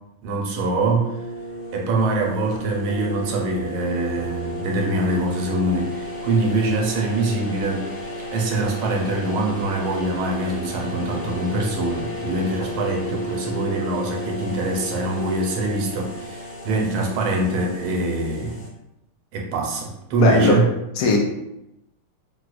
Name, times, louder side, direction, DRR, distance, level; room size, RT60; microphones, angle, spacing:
voice 1, 0.2-1.1 1.7-7.9 8.3-18.6 19.3-20.6, right 2 dB, 85° right, 0 dB, 1.5 m, -24 dB
sound 1, 0.8-18.7, equal, 60° left, 1.4 m, -33 dB
voice 2, 20.2-20.6 21.0-21.2, left 4 dB, 85° left, 1 dB, 1.5 m, -18 dB
4.5 x 2.1 x 2.4 m, 0.85 s
omnidirectional pair, 2.4 m